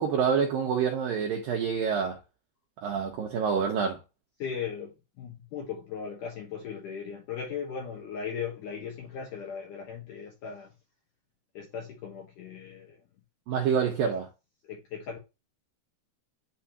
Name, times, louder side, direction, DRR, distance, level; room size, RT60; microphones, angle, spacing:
voice 1, 0.0-2.2 2.8-4.0 13.5-14.3, right 6 dB, 85° right, 2.0 m, -27 dB
voice 2, 4.4-10.7 11.5-13.0 14.7-15.2, left 7 dB, 80° left, 1.8 m, -38 dB
10.5 x 3.6 x 2.9 m
omnidirectional pair, 5.4 m